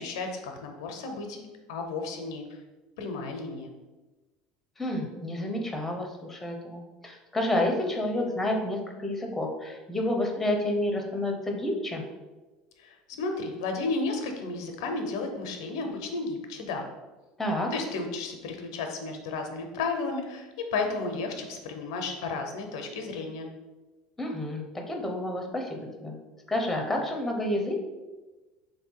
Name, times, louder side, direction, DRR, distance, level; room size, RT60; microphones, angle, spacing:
voice 1, 0.0-2.6 3.0-3.7 12.8-16.9 17.7-23.5, left 3 dB, 85° left, 4 dB, 0.6 m, -33 dB
voice 2, 4.8-12.0 17.4-17.7 24.2-26.2 26.5-27.8, left 1 dB, 10° left, 2 dB, 0.7 m, -29 dB
3.2 x 2.7 x 4.5 m, 1.2 s
supercardioid pair, 105°, 2 cm